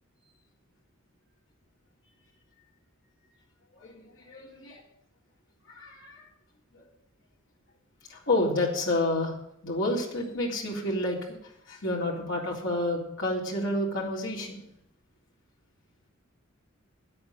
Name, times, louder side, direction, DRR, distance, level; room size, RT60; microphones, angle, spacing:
voice 1, 3.7-4.8 5.7-6.3 6.7-6.9 8.1-9.4 9.6-11.2 11.4-14.6, left 1 dB, 60° left, -3 dB, 3.8 m, -30 dB
9.7 x 8.7 x 9.1 m, 0.75 s
head